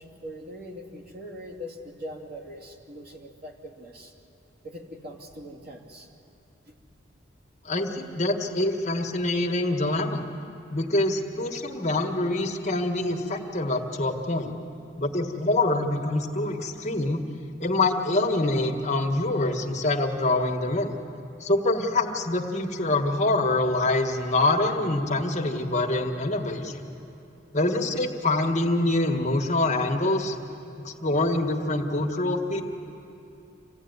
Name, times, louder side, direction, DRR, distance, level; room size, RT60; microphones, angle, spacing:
voice 1, 0.0-4.1 4.6-6.1 6.7-6.8 27.0-27.1, equal, 55° right, -1 dB, 2.8 m, -41 dB
voice 2, 7.7-10.3 10.7-14.5 15.0-17.2 17.6-21.0 21.4-26.9 27.5-30.4 30.8-32.6, left 2 dB, 40° left, 2 dB, 1.7 m, -25 dB
27.0 x 16.5 x 9.6 m, 2.8 s
head